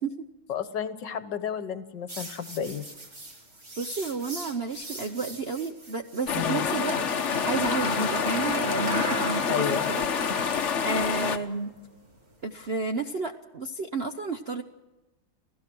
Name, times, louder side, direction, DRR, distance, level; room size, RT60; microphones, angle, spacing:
voice 1, 0.5-2.9 6.3-6.7 9.5-9.9, left 8 dB, 65° left, 12 dB, 1.6 m, -31 dB
sound 1, 2.1-6.4 7.3-12.7, right 1 dB, 30° right, 3.1 m, -38 dB
voice 2, 3.8-7.0 7.4-10.0 10.8-11.7 12.4-14.6, right 3 dB, 50° right, 6 dB, 0.7 m, -31 dB
sound 2, 6.3-11.4, left 6 dB, 45° left, 1.1 m, -27 dB
29.5 x 16.5 x 6.2 m, 1.1 s
omnidirectional pair, 2.2 m